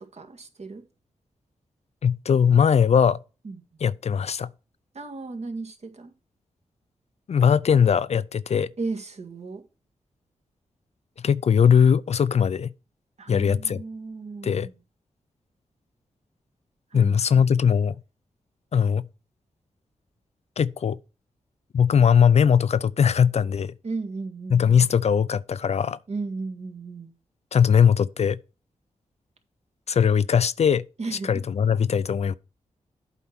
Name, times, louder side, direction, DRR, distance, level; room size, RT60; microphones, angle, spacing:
voice 1, 0.1-0.8 3.4-3.6 4.9-6.1 8.8-9.6 13.2-14.8 16.9-17.5 23.8-24.9 26.1-27.1 31.0-31.3, right 3 dB, 55° right, 1.7 m, -35 dB
voice 2, 2.0-3.2 3.8-4.5 7.3-8.7 11.2-12.7 13.3-13.8 14.4-14.7 16.9-17.9 18.7-19.1 20.6-21.0 21.7-23.7 24.5-26.0 27.5-28.4 29.9-30.8 31.1-32.3, left 7 dB, 55° left, 0.4 m, -20 dB
8.0 x 4.4 x 5.9 m
cardioid pair, 55°, 13 cm